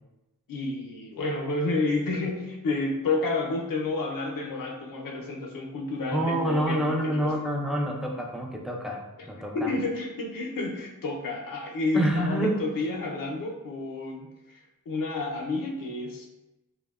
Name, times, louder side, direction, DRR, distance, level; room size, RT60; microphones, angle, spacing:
voice 1, 0.5-7.3 9.2-9.3 9.5-14.6 14.9-16.3, left 3 dB, 75° left, 0 dB, 0.5 m, -30 dB
voice 2, 6.1-9.7 11.9-12.6, right 1 dB, ahead, -1 dB, 0.4 m, -27 dB
2.7 x 2.0 x 2.2 m, 1.0 s
wide cardioid pair, 50°, 35 cm